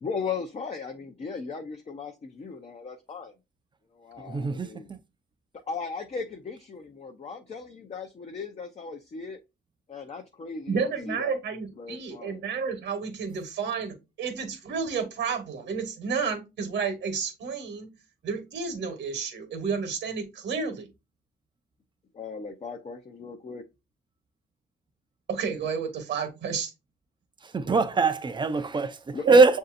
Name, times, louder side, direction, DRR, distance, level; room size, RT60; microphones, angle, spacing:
voice 1, 0.0-3.3 4.0-4.9 5.7-9.4 9.9-11.4 11.7-12.4 22.1-23.6 29.1-29.5, left 5 dB, 35° left, 0.6 m, -37 dB
voice 2, 4.2-4.7 27.5-29.6, right 4 dB, 25° right, 0.5 m, -22 dB
voice 3, 10.7-17.9 18.2-20.9 25.3-26.7 27.7-27.8 29.2-29.6, right 5 dB, 60° right, 1.2 m, -31 dB
6.5 x 2.7 x 2.5 m
cardioid pair, 90°, 20 cm